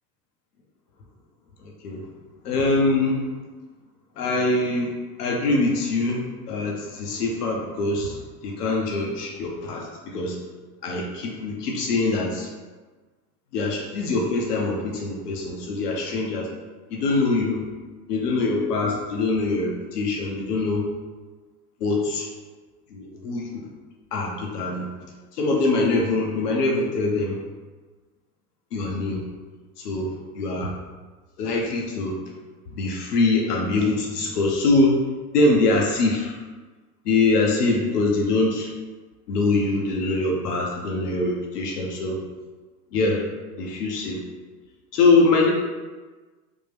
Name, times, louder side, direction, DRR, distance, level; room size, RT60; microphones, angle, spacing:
voice 1, 2.4-3.2 4.2-4.9 5.2-10.4 10.8-12.5 13.5-16.5 16.9-17.7 18.1-20.9 21.8-22.3 22.9-23.6 24.1-24.9 25.3-27.4 28.7-29.2 29.8-30.7 31.4-32.2 32.7-35.0 35.3-36.4 37.0-38.7 39.3-42.2 42.9-43.2 43.6-44.2 44.9-45.5, left 3 dB, 85° left, -1 dB, 0.7 m, -23 dB
3.4 x 2.1 x 3.2 m, 1.3 s
hypercardioid pair, 105°, 45 cm